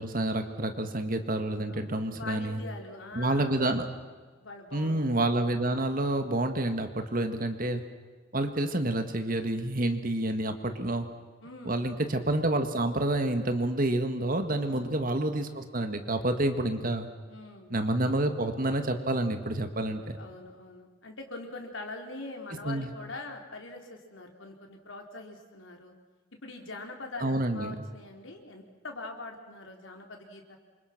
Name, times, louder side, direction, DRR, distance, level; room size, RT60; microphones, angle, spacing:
voice 1, 0.0-2.6 3.1-3.9 4.7-7.8 8.3-11.1 11.7-17.1 17.7-20.2 22.6-22.9 27.2-27.8, right 1 dB, 45° right, 7 dB, 1.9 m, -28 dB
voice 2, 1.7-3.6 4.4-5.0 11.4-12.2 14.6-14.9 17.3-17.8 19.8-25.9 26.4-30.6, left 2 dB, 75° left, 2 dB, 4.1 m, -43 dB
28.0 x 26.0 x 6.1 m, 1.4 s
head